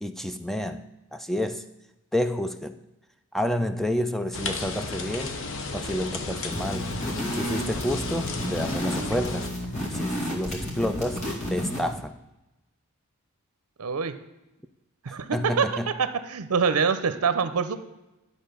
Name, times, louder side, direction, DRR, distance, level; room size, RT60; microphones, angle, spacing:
voice 1, 0.0-1.6 2.1-2.8 3.3-5.4 5.7-6.9 7.3-9.5 9.9-12.1 15.1-15.9, left 1 dB, ahead, 9 dB, 0.3 m, -29 dB
sound 1, 4.3-9.5, left 3 dB, 60° left, 0.9 m, -34 dB
sound 2, 6.5-12.0, equal, 35° left, 2.2 m, -31 dB
voice 2, 13.8-14.1 15.1-15.7 16.0-17.8, right 6 dB, 75° right, 12 dB, 0.6 m, -25 dB
10.5 x 4.1 x 6.8 m, 0.98 s
head